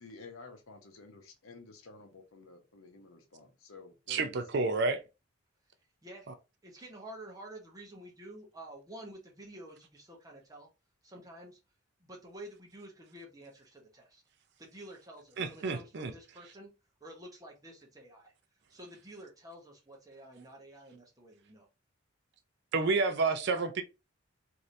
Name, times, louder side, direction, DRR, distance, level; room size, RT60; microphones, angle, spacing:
voice 1, 0.0-4.7, left 3 dB, 75° left, 0.7 m, -52 dB
voice 2, 4.1-5.0 6.3-6.4 15.4-16.1 22.7-23.8, right 3 dB, 55° right, 0.4 m, -30 dB
voice 3, 6.6-10.7 11.0-11.6 12.0-14.2 14.6-16.7 17.0-18.3 18.7-21.7, right 1 dB, 15° right, 0.7 m, -50 dB
3.2 x 2.6 x 2.6 m
head